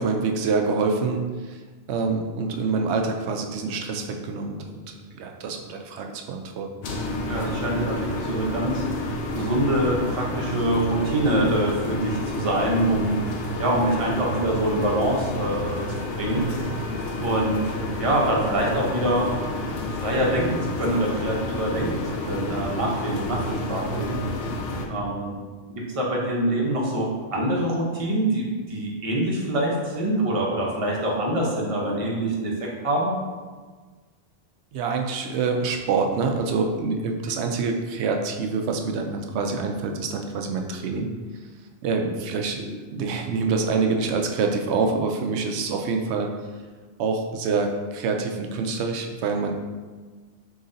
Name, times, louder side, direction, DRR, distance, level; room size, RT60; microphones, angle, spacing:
voice 1, 0.0-1.6 1.9-4.8 5.2-6.7 34.7-41.1 41.8-46.3 47.0-49.5, right 4 dB, 85° right, 4 dB, 0.8 m, -26 dB
sound 1, 6.8-24.9, left 1 dB, 65° left, 0.8 m, -30 dB
voice 2, 7.3-8.8 9.3-13.2 13.6-15.8 16.2-16.4 17.2-17.6 18.0-19.3 20.0-24.2 24.9-25.4 25.7-32.5 32.8-33.1, right 1 dB, 35° right, -3 dB, 0.8 m, -25 dB
4.0 x 3.1 x 3.8 m, 1.4 s
omnidirectional pair, 1.1 m